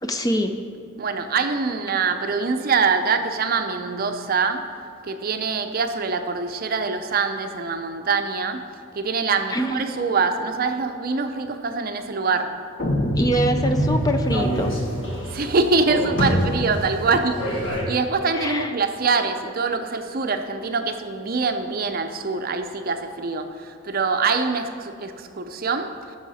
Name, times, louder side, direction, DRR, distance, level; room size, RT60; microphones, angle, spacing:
voice 1, 0.0-0.5 9.5-9.8 13.2-14.7 18.3-18.7, equal, 15° left, 6 dB, 0.5 m, -24 dB
voice 2, 1.0-4.7 5.0-8.6 9.0-12.6 15.3-25.9, right 4 dB, 45° right, 7 dB, 0.6 m, -24 dB
sound 1, 12.8-17.8, equal, 60° left, 1.6 m, -25 dB
sound 2, 12.8-14.4, left 1 dB, 40° left, 0.8 m, -27 dB
15.0 x 6.4 x 4.2 m, 2.4 s
head